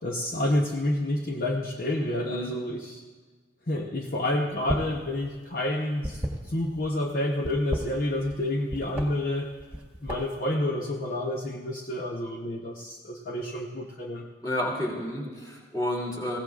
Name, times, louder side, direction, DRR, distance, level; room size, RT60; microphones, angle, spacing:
voice 1, 0.0-3.0 3.7-9.5 10.0-14.2, left 1 dB, 50° left, 1 dB, 0.8 m, -29 dB
voice 2, 2.2-2.5 14.4-16.4, left 1 dB, 20° left, -3 dB, 2.6 m, -30 dB
sound 1, 4.5-5.0 5.3-6.9 7.4-8.4 8.7-9.1 9.6-10.4, equal, 10° right, 1.5 m, -33 dB
20.5 x 16.5 x 2.4 m, 1.4 s
head